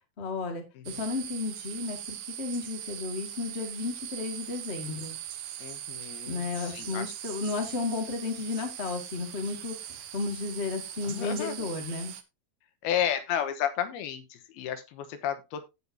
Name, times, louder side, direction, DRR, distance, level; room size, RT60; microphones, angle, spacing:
voice 1, 0.2-5.1 6.3-12.1, left 3 dB, 25° left, 3 dB, 1.5 m, -33 dB
sound 1, 0.8-12.2, right 11 dB, 75° right, 1.6 m, -41 dB
voice 2, 5.6-7.0 11.0-11.5 12.8-15.7, left 9 dB, 80° left, 9 dB, 3.0 m, -32 dB
16.0 x 5.5 x 2.8 m, 0.24 s
omnidirectional pair, 4.4 m